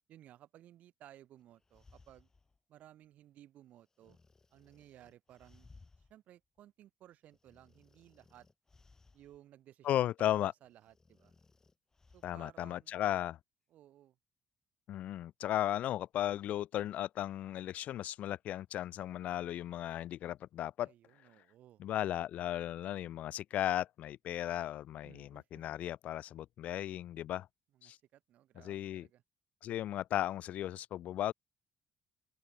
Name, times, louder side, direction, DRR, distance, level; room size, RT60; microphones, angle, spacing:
voice 1, 0.1-2.3 2.7-4.2 4.5-5.7 6.0-8.5 9.1-11.3 12.1-13.0 13.7-14.2 20.8-21.8 25.0-25.6 27.7-29.2, right 12 dB, 70° right, 1.3 m, -59 dB
sound 1, 1.4-2.6 4.0-6.1 6.6-6.7 7.3-9.4 10.6-12.5, left 3 dB, 20° left, 1.8 m, -63 dB
voice 2, 9.8-10.5 12.2-13.4 14.9-20.9 21.8-27.5 27.8-28.0 28.6-29.1 29.6-31.3, left 12 dB, 65° left, 0.4 m, -36 dB
open air
cardioid pair, 115°, 3 cm